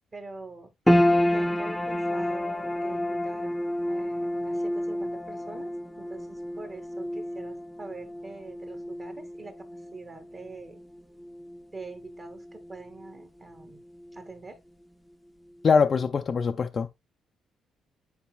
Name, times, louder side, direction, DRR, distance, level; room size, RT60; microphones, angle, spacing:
voice 1, 0.1-0.7 1.3-3.6 3.9-5.7 6.0-10.8 11.7-13.8 14.1-14.6, right 3 dB, 30° right, 1.8 m, -44 dB
sound 1, 0.9-13.3 13.5-14.5 14.9-15.0, left 1 dB, 5° left, 0.8 m, -29 dB
voice 2, 15.6-16.9, left 5 dB, 45° left, 0.5 m, -23 dB
10.5 x 4.2 x 2.3 m
cardioid pair, 90°, 0 cm